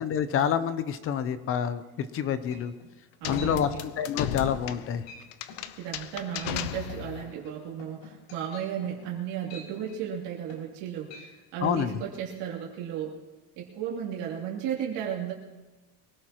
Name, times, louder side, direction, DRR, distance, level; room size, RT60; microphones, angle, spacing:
voice 1, 0.0-2.7 3.3-3.7 4.0-5.0 11.6-12.0, left 8 dB, 30° left, 13 dB, 0.6 m, -28 dB
sound 1, 2.1-2.2 2.5-2.9 3.4-3.6 4.0-4.3 4.6-4.8 5.1-5.2 5.5-5.7 6.2-6.6 6.9-10.8 11.1-11.3 11.6-11.8, left 3 dB, 80° left, 6.0 m, -48 dB
sound 2, 3.2-7.3, left 11 dB, 60° left, 0.8 m, -35 dB
voice 2, 3.2-3.9 5.8-13.1 13.6-15.3, right 9 dB, 65° right, -3 dB, 2.9 m, -34 dB
24.0 x 17.0 x 3.0 m, 1.1 s
cardioid pair, 175°, 46 cm